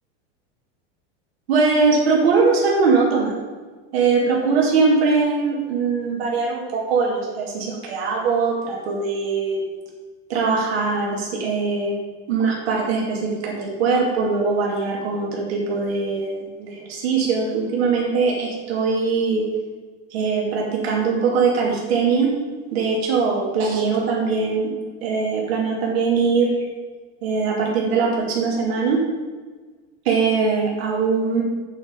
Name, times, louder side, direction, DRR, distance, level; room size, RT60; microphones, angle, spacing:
voice 1, 1.5-3.3 3.9-9.6 10.3-12.0 12.3-19.4 20.1-22.3 22.7-24.7 25.0-26.5 27.2-29.0 30.0-31.4, right 4 dB, 90° right, -1 dB, 2.5 m, -21 dB
8.2 x 7.6 x 5.2 m, 1.4 s
supercardioid pair, 160°, 30 cm